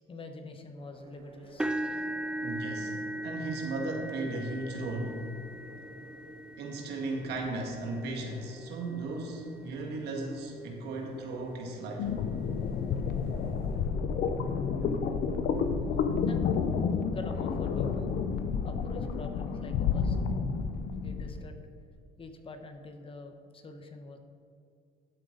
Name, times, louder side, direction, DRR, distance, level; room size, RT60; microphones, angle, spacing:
voice 1, 0.1-1.7 16.2-16.5 17.1-18.2 18.6-20.2 21.0-21.6 22.2-24.2, left 3 dB, 30° left, 6 dB, 1.1 m, -45 dB
sound 1, 0.8-13.9, right 1 dB, 35° right, 2.6 m, -54 dB
sound 2, 1.6-9.6 10.3-10.5 10.9-11.0 12.4-12.5, right 1 dB, 5° right, 0.4 m, -39 dB
voice 2, 2.4-2.9 3.2-5.3 6.6-12.1, right 2 dB, 75° right, 1 dB, 2.0 m, -36 dB
sound 3, 12.0-21.4, left 6 dB, 65° left, 0.8 m, -30 dB
12.5 x 7.9 x 4.0 m, 2.4 s
cardioid pair, 110°, 17 cm